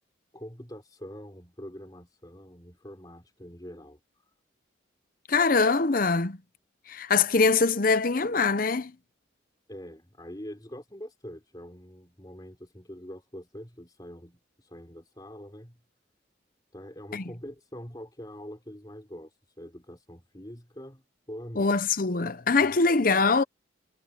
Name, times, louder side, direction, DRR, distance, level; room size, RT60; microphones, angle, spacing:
voice 1, 0.3-4.0 9.7-15.8 16.7-21.8, equal, 20° left, 3.6 m, -44 dB
voice 2, 5.3-6.4 6.9-8.9 17.1-17.3 21.6-23.4, left 4 dB, 45° left, 0.8 m, -23 dB
head